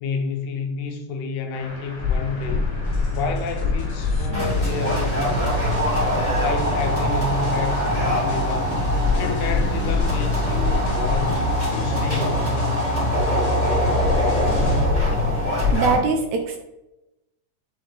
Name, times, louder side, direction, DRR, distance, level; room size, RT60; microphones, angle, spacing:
voice 1, 0.0-2.7 3.1-5.6 6.4-8.8 9.2-11.4 11.7-12.7, left 4 dB, 80° left, 1.9 m, -30 dB
sound 1, 1.5-12.4, left 2 dB, 45° left, 2.5 m, -39 dB
sound 2, 2.0-16.0, left 2 dB, 10° right, 1.9 m, -23 dB
sound 3, 2.8-14.8, right 1 dB, 30° left, 1.7 m, -27 dB
voice 2, 15.7-16.6, right 5 dB, 80° right, 1.8 m, -22 dB
8.4 x 3.8 x 3.3 m
omnidirectional pair, 3.7 m